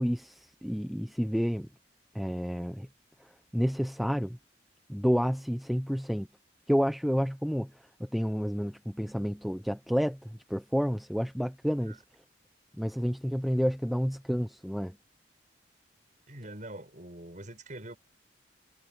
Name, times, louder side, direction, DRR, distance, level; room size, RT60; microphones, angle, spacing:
voice 1, 0.0-1.7 2.1-2.9 3.2-4.4 4.9-6.3 6.7-12.0 12.8-15.0, equal, ahead, 0.9 m, -30 dB
voice 2, 16.3-18.0, right 1 dB, 45° right, 7.2 m, -44 dB
head